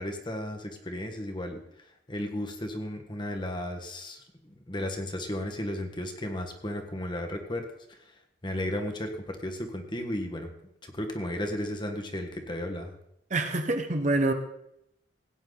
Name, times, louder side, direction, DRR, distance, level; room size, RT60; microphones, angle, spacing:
voice 1, 0.0-1.6 2.1-4.2 4.7-7.6 8.4-10.5 10.8-12.9, left 1 dB, 25° left, 4 dB, 1.5 m, -34 dB
voice 2, 13.3-14.3, right 2 dB, 40° right, 6 dB, 1.2 m, -26 dB
16.5 x 9.5 x 4.0 m, 0.78 s
head